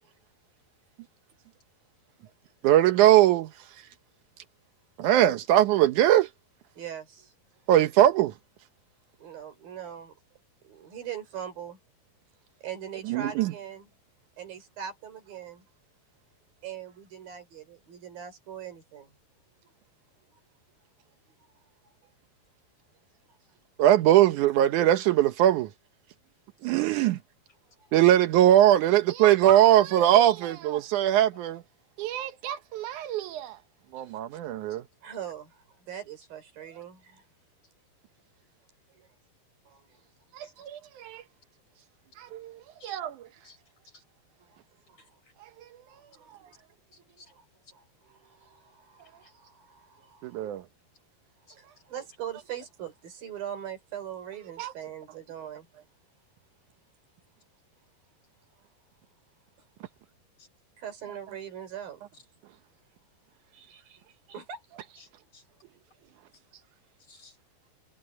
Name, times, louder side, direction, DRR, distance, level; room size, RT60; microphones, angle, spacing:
voice 1, 2.6-3.5 5.0-6.3 7.7-8.3 13.1-13.5 23.8-25.7 26.6-27.2 27.9-31.6 32.0-33.6 33.9-34.8 40.3-41.2 42.2-43.1 50.2-50.6 54.6-54.7, right 12 dB, 90° right, 1.7 m, -21 dB
voice 2, 6.8-7.3 9.2-10.1 10.6-11.8 12.6-13.9 14.4-15.7 16.6-19.1 23.3-23.4 27.8-27.9 34.0-34.4 35.0-37.2 38.9-39.1 39.7-40.0 40.6-40.7 44.5-44.6 44.9-45.0 45.9-46.5 47.0-47.4 47.7-50.5 51.5-55.7 60.8-62.1 63.5-64.0 64.3-64.6, right 9 dB, 60° right, 5.6 m, -41 dB
voice 3, 45.0-45.3 46.9-47.3 49.2-49.3 51.5-51.6 60.4-60.5 62.1-62.2 65.0-65.4 67.0-67.4, left 3 dB, 30° left, 5.0 m, -56 dB
omnidirectional pair, 4.8 m